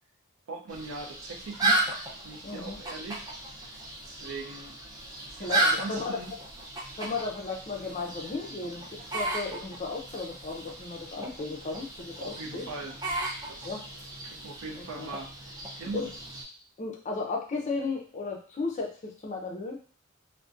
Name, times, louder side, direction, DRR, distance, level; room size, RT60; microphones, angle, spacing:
voice 1, 0.5-2.0 2.2-3.3 3.6-4.7 5.2-6.3 12.2-13.0 13.5-13.8 14.2-16.1, right 3 dB, 75° right, 2 dB, 0.5 m, -41 dB
sound 1, 0.7-16.4, right 2 dB, 20° right, 0.5 m, -34 dB
voice 2, 2.4-2.8 5.4-6.2 6.9-12.7 13.6-13.8 14.7-15.1 15.9-16.1 16.8-19.8, left 3 dB, 35° left, 0 dB, 0.5 m, -35 dB
2.5 x 2.1 x 2.4 m, 0.39 s
head